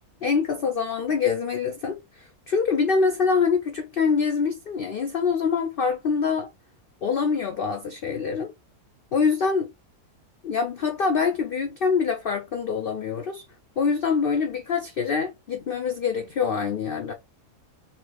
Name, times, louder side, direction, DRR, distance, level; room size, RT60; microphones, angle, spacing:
voice 1, 0.2-2.0 2.5-6.5 7.0-8.5 9.1-9.7 10.4-13.4 13.8-17.1, left 5 dB, 85° left, 0.5 m, -25 dB
4.1 x 2.1 x 2.9 m
omnidirectional pair, 1.6 m